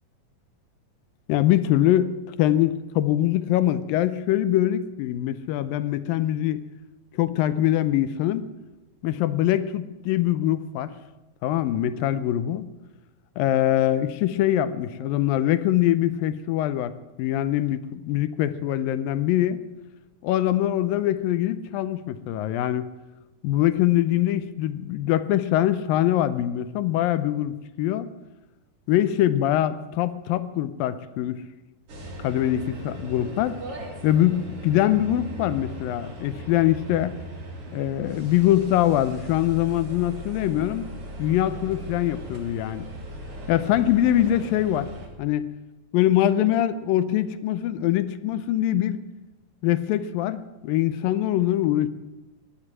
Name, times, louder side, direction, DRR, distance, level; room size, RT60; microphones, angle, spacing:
voice 1, 1.3-6.6 7.1-8.5 9.0-10.9 11.4-12.7 13.4-16.9 17.2-19.6 20.2-22.9 23.4-28.1 28.9-31.4 32.2-33.6 34.0-37.1 37.7-40.9 41.2-42.9 43.5-44.9 45.2-45.5 45.9-49.0 49.6-51.9, left 12 dB, 75° left, 13 dB, 2.3 m, -23 dB
sound 1, 31.9-45.1, equal, 40° right, 3.1 m, -38 dB
18.0 x 11.0 x 7.4 m, 1.0 s
omnidirectional pair, 4.3 m